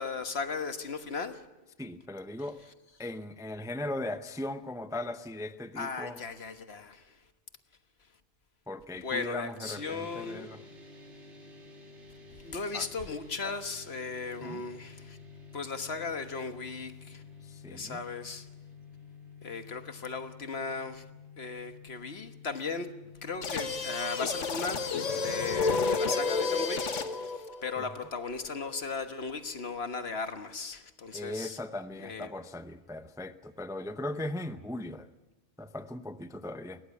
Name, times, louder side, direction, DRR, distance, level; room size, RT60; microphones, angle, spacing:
voice 1, 0.0-1.4 5.7-7.2 8.9-10.5 12.4-15.2 15.5-17.2 17.7-18.5 19.4-21.0 21.4-22.9 23.2-31.6 32.0-32.3, left 4 dB, 60° left, 1.6 m, -37 dB
voice 2, 1.8-2.6 3.0-6.2 8.7-10.6 12.7-12.9 14.4-14.6 17.4-18.0 31.1-35.1 35.6-36.8, left 1 dB, 5° right, 0.6 m, -38 dB
sound 1, 9.6-25.6, left 5 dB, 70° right, 3.1 m, -51 dB
sound 2, 23.4-27.3, left 5 dB, 90° left, 1.6 m, -34 dB
sound 3, 24.7-28.8, left 3 dB, 45° left, 0.8 m, -32 dB
21.5 x 18.0 x 8.4 m
omnidirectional pair, 1.2 m